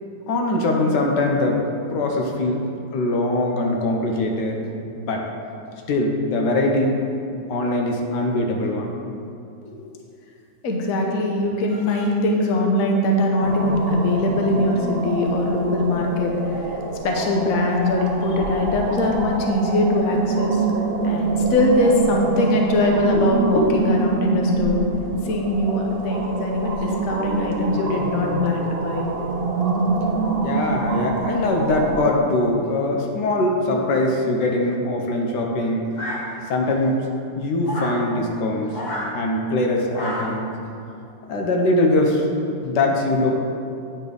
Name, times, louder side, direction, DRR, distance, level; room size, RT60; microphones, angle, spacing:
voice 1, 0.3-1.6 1.9-2.6 2.9-4.6 4.9-5.2 5.9-6.9 7.5-8.9 30.4-35.8 36.5-37.0 37.4-38.8 39.1-40.5 41.3-42.3 42.6-43.3, left 2 dB, 80° left, 1 dB, 1.5 m, -22 dB
voice 2, 9.6-9.9 10.6-16.3 16.6-20.6 21.0-24.9 25.2-29.1, left 1 dB, 60° left, 1 dB, 1.2 m, -21 dB
sound 1, 13.4-32.0, right 4 dB, 85° right, 0.5 m, -26 dB
sound 2, 35.9-36.7 37.6-38.0 38.7-39.1 39.9-40.4, equal, 30° left, 1.1 m, -30 dB
8.9 x 4.4 x 5.1 m, 2.6 s
omnidirectional pair, 1.8 m